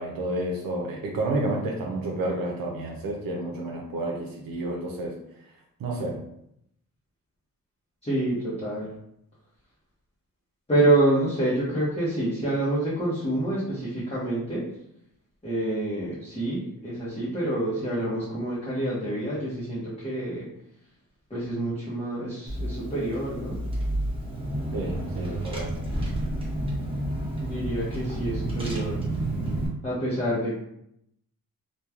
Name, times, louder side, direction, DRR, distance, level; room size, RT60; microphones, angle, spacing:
voice 1, 0.0-5.1 5.8-6.2 24.7-25.8, right 2 dB, 75° right, -1 dB, 0.5 m, -30 dB
voice 2, 8.0-8.9 10.7-14.6 15.4-20.5 21.3-23.6 27.4-28.9 29.8-30.6, right 1 dB, 15° left, -10 dB, 0.8 m, -27 dB
Car / Engine, 22.5-29.7, right 1 dB, 15° right, 0.8 m, -30 dB
3.0 x 2.2 x 2.4 m, 0.77 s
wide cardioid pair, 100°, 35 cm